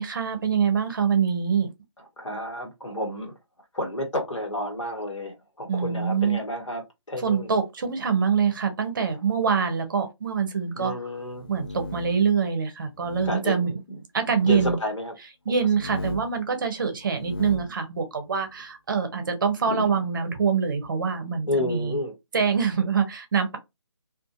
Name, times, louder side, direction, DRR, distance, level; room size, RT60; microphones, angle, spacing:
voice 1, 0.0-1.7 5.7-6.4 7.2-10.9 11.5-13.8 14.1-14.8 15.5-22.0 22.3-23.6, right 6 dB, 45° right, 0.7 m, -25 dB
voice 2, 2.0-3.3 3.7-7.5 10.7-11.5 13.2-14.0 14.3-15.2 15.5-15.6 19.1-19.2 19.6-19.9 21.5-22.1, left 1 dB, 75° left, 1.3 m, -31 dB
sound 1, 11.3-12.3 13.0-13.3 14.3-14.8 15.6-16.4 17.0-17.7, left 1 dB, 50° left, 0.6 m, -36 dB
2.5 x 2.5 x 2.5 m
figure-of-eight pair, 150°, 16 cm